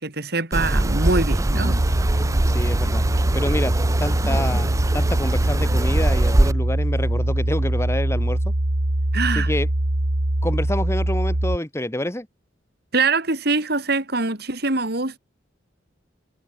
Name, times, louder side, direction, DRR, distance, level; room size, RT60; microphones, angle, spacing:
voice 1, 0.0-1.8 9.1-9.5 12.9-15.2, right 3 dB, 60° right, 3.2 m, -23 dB
sound 1, 0.5-6.5, right 1 dB, 15° right, 0.5 m, -22 dB
sound 2, 1.6-11.6, right 1 dB, 80° right, 2.0 m, -22 dB
voice 2, 2.5-3.0 3.3-8.5 9.3-9.7 10.4-12.3, left 1 dB, 15° left, 1.7 m, -27 dB
head